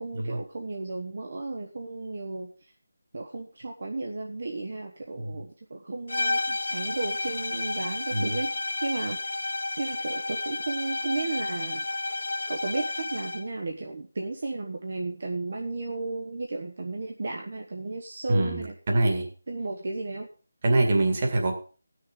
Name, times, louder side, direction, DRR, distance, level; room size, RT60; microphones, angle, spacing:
voice 1, 0.0-2.7 3.1-9.5 9.8-11.8 12.5-18.7 19.5-20.3, right 3 dB, 45° right, 1 dB, 1.3 m, -34 dB
sound 1, 6.1-13.5, left 2 dB, 80° left, 1.0 m, -31 dB
voice 2, 18.3-19.3 20.6-21.5, right 2 dB, 25° right, 2 dB, 2.0 m, -24 dB
16.0 x 6.5 x 5.2 m, 0.37 s
figure-of-eight pair, 175°, 0 cm